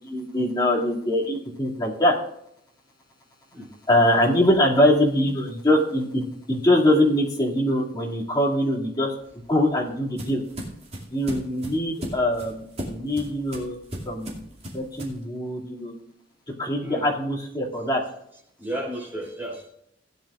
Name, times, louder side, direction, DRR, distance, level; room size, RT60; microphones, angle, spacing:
voice 1, 0.1-2.1 3.9-9.1 9.5-10.4 11.1-13.7 14.1-14.4 14.7-15.9 16.6-18.0, left 1 dB, 25° left, -4 dB, 2.5 m, -23 dB
sound 1, 9.2-15.2, equal, 35° right, 2.5 m, -37 dB
voice 2, 18.6-19.7, right 1 dB, 10° right, -4 dB, 5.2 m, -33 dB
17.0 x 9.6 x 2.5 m, 0.73 s
head